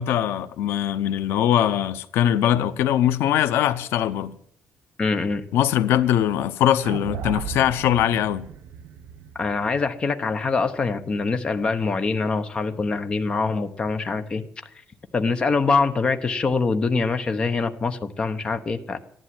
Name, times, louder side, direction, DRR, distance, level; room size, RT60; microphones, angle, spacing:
voice 1, 0.0-4.3 5.5-8.5, left 11 dB, 85° left, 0.8 m, -21 dB
voice 2, 5.0-5.4 9.4-14.5 15.1-19.0, left 4 dB, 25° left, 1.0 m, -24 dB
sound 1, 6.8-11.1, right 8 dB, 75° right, 1.3 m, -36 dB
14.5 x 11.5 x 7.7 m
cardioid pair, 170°, 4 cm